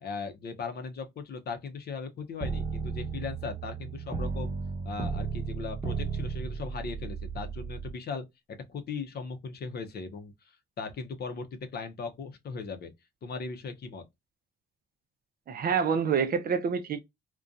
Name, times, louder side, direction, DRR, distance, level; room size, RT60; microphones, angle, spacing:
voice 1, 0.0-4.5 4.8-8.2 8.7-12.9 13.2-14.0, left 4 dB, 55° left, 0.6 m, -38 dB
sound 1, 2.4-7.9, right 5 dB, 25° right, 0.9 m, -34 dB
voice 2, 15.5-17.0, right 6 dB, 50° right, 0.5 m, -27 dB
2.5 x 2.2 x 2.4 m
cardioid pair, 90°, 20 cm